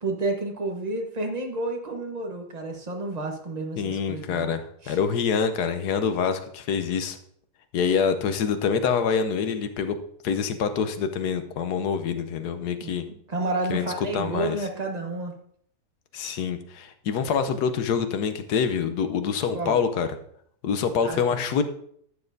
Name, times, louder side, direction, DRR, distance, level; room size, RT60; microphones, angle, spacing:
voice 1, 0.0-4.5 4.8-5.0 12.8-12.9 13.3-15.3 19.5-19.8 21.0-21.4, right 2 dB, 30° right, 2 dB, 1.1 m, -30 dB
voice 2, 3.8-7.2 7.7-10.0 10.2-13.1 13.7-14.6 16.1-20.1 20.6-21.6, left 6 dB, 80° left, 9 dB, 1.4 m, -26 dB
11.5 x 7.0 x 2.7 m, 0.65 s
omnidirectional pair, 1.7 m